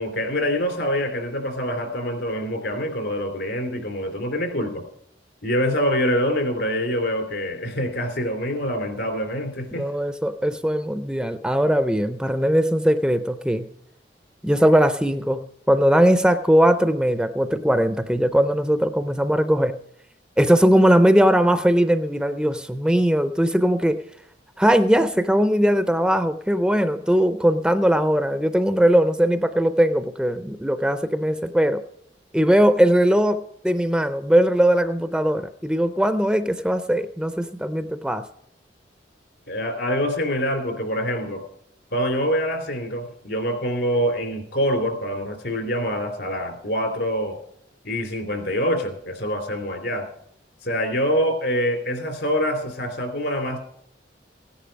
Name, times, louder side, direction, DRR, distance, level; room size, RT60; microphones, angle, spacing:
voice 1, 0.0-4.8 5.4-9.9 39.5-41.4 41.9-47.4 47.8-50.1 50.6-53.6, equal, 70° left, 5 dB, 2.8 m, -25 dB
voice 2, 9.8-13.7 14.4-19.8 20.4-24.0 24.6-31.8 32.3-38.2, equal, 5° right, 10 dB, 0.4 m, -20 dB
16.5 x 10.0 x 5.2 m, 0.72 s
head